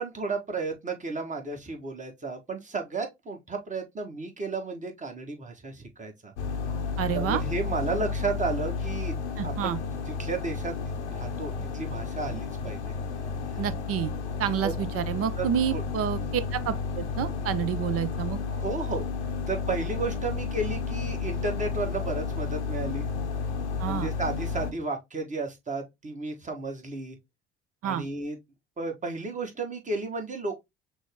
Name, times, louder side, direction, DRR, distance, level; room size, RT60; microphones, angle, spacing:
voice 1, 0.0-6.3 7.1-9.2 9.4-9.8 10.1-10.8 11.1-12.9 14.6-14.7 15.4-15.5 15.7-15.8 18.5-19.0 19.5-23.1 23.8-27.2 27.8-28.4 28.8-30.5, right 3 dB, 20° right, 1.3 m, -33 dB
sound 1, 6.4-24.7, left 5 dB, 85° left, 0.8 m, -32 dB
voice 2, 7.0-7.4 9.4-9.8 13.6-14.1 14.4-18.4 23.8-24.1 27.8-28.0, right 9 dB, 45° right, 0.7 m, -29 dB
6.0 x 2.1 x 3.4 m
figure-of-eight pair, 55°, 34 cm